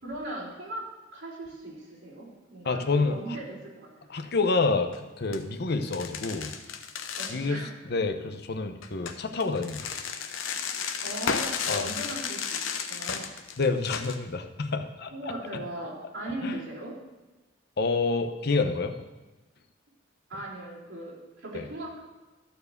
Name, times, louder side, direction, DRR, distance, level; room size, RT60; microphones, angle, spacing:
voice 1, 0.0-4.1 7.2-7.7 11.0-13.4 15.1-16.9 20.3-22.0, right 1 dB, 60° right, -8 dB, 3.8 m, -38 dB
voice 2, 2.6-3.4 4.1-4.9 5.2-6.5 7.3-9.9 11.7-11.9 13.6-15.1 16.4-16.6 17.8-19.0 21.5-21.6, left 3 dB, 55° left, 6 dB, 0.7 m, -28 dB
sound 1, 4.8-5.0 5.3-5.4 5.8-7.4 8.8-14.2, left 6 dB, 90° left, 0.8 m, -33 dB
13.5 x 4.7 x 6.6 m, 1.2 s
head